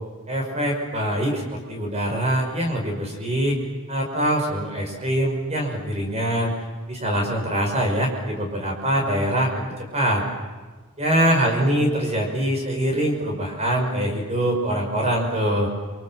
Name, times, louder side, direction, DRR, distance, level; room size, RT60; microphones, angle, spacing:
voice 1, 0.3-3.6 3.9-6.5 6.9-10.2 11.0-15.7, right 1 dB, 30° right, 1 dB, 5.7 m, -23 dB
28.5 x 25.5 x 7.7 m, 1.3 s
head